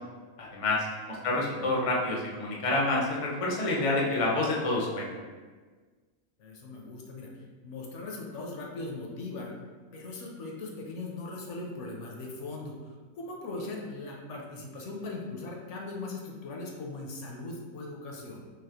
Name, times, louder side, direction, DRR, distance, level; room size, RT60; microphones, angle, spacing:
voice 1, 0.4-5.1, left 2 dB, 50° left, -3 dB, 0.4 m, -28 dB
voice 2, 1.2-1.7 6.4-7.3 7.6-9.5 9.9-18.5, left 2 dB, 65° left, 0 dB, 0.9 m, -39 dB
4.0 x 2.9 x 2.9 m, 1.4 s
omnidirectional pair, 1.4 m